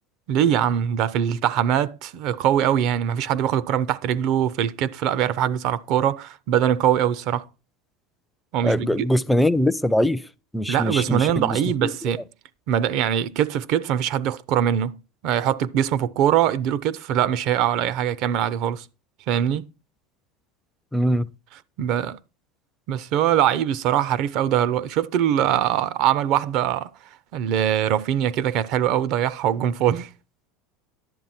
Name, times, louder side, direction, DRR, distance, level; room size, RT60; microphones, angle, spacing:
voice 1, 0.3-7.5 8.5-9.1 10.7-12.2 12.7-18.9 19.3-19.7 21.8-22.2 22.9-26.9 27.3-30.1, right 10 dB, 55° right, 0.5 m, -22 dB
voice 2, 8.6-10.2 10.5-11.9 20.9-21.3, left 1 dB, 5° left, 0.4 m, -22 dB
11.0 x 7.4 x 4.2 m
supercardioid pair, 120°, 0 cm